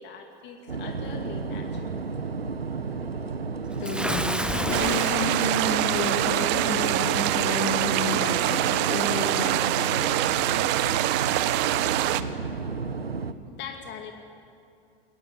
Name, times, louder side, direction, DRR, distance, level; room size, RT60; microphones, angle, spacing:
voice 1, 0.0-2.0 13.5-14.1, left 6 dB, 35° left, 4 dB, 2.3 m, -41 dB
sound 1, 0.7-13.3, right 4 dB, 85° right, 1.0 m, -32 dB
voice 2, 3.8-10.1, left 3 dB, 55° left, -1 dB, 3.1 m, -31 dB
Bathtub (filling or washing) / Splash splatter, 3.8-6.3, right 1 dB, 5° right, 1.1 m, -31 dB
sound 2, 4.7-12.2, right 15 dB, 35° right, 0.8 m, -25 dB
22.0 x 19.0 x 8.2 m, 2.4 s
figure-of-eight pair, 90°, 29 cm